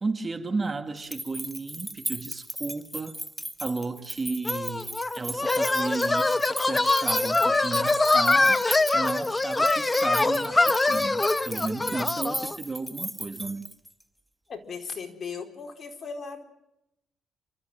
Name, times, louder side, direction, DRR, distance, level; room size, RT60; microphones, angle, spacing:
voice 1, 0.0-3.2 3.6-13.7, right 3 dB, 30° right, 1.9 m, -34 dB
sound 1, 1.0-14.0, right 1 dB, 5° right, 1.5 m, -36 dB
sound 2, 4.5-12.6, left 2 dB, 20° left, 0.9 m, -24 dB
voice 2, 14.5-16.4, left 5 dB, 45° left, 4.4 m, -37 dB
29.5 x 13.5 x 9.0 m
cardioid pair, 90°, 0 cm